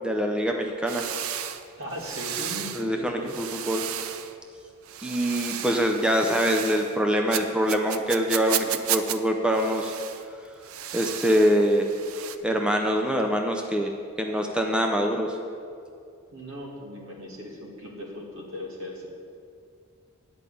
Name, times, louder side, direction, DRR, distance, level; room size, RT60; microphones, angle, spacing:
voice 1, 0.0-1.0 2.7-3.8 5.0-9.9 10.9-11.9 12.4-13.9 14.2-15.4, equal, 5° right, 2 dB, 0.5 m, -24 dB
sound 1, 0.9-2.9 3.3-4.3 4.8-7.0 7.3-9.2 9.5-10.3 10.6-12.4, right 10 dB, 85° right, 0.5 m, -33 dB
voice 2, 1.8-3.4 16.3-19.2, left 1 dB, 65° right, -2 dB, 2.2 m, -38 dB
10.5 x 5.2 x 8.4 m, 2.5 s
head